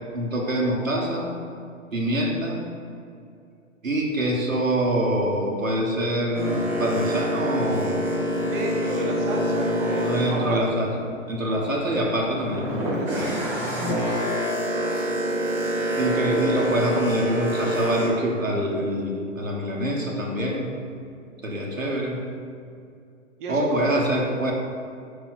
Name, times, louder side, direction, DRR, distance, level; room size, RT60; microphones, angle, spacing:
voice 1, 0.1-1.3 1.9-2.6 3.8-8.1 10.1-10.9 11.3-13.0 16.0-20.7 21.4-22.2 23.5-24.5, right 1 dB, 85° right, -2 dB, 1.3 m, -25 dB
Boat Water vehicle, 6.3-11.4 11.8-18.1, equal, 5° right, 0.5 m, -26 dB
voice 2, 8.4-10.6 11.5-11.8 12.8-13.5 16.1-16.5 23.4-24.0, right 2 dB, 40° right, -1 dB, 1.0 m, -33 dB
5.3 x 4.9 x 4.1 m, 2.4 s
figure-of-eight pair, 120°, 39 cm